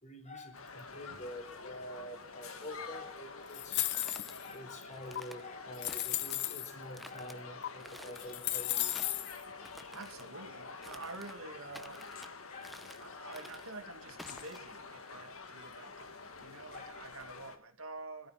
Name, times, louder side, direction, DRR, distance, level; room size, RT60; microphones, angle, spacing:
voice 1, 0.0-3.9 4.4-9.0 12.5-12.8 16.7-16.9, left 1 dB, 35° left, 4.2 m, -47 dB
sound 1, 0.5-17.6, left 4 dB, 80° left, 2.3 m, -48 dB
sound 2, 3.5-4.5 5.2-5.3 5.7-6.7 7.6-7.7 8.1-9.4, left 14 dB, 55° left, 0.8 m, -34 dB
sound 3, 3.7-4.3 4.9-5.4 5.9-6.6 6.9-7.4 7.8-8.3 8.8-9.2 9.6-10.3 10.8-11.4 11.7-12.3 12.6-13.1 13.3-13.7 14.2-14.6, equal, ahead, 0.9 m, -52 dB
voice 2, 9.9-12.5 13.0-18.3, right 3 dB, 70° right, 2.4 m, -48 dB
25.5 x 13.0 x 4.3 m
head